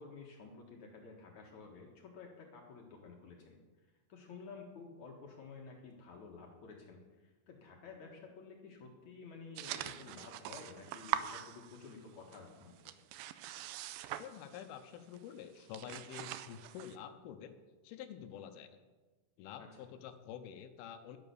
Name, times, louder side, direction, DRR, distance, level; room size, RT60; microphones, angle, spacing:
voice 1, 0.0-3.6 4.1-12.9 19.6-19.7, left 4 dB, 60° left, 1 dB, 2.5 m, -52 dB
sound 1, 9.6-12.1 12.3-14.8 15.1-15.3 15.6-17.0, right 12 dB, 80° right, 2.3 m, -43 dB
voice 2, 14.1-17.5 17.8-18.8 19.4-21.2, left 9 dB, 85° left, 8 dB, 2.8 m, -48 dB
11.0 x 11.0 x 6.9 m, 1.3 s
omnidirectional pair, 4.3 m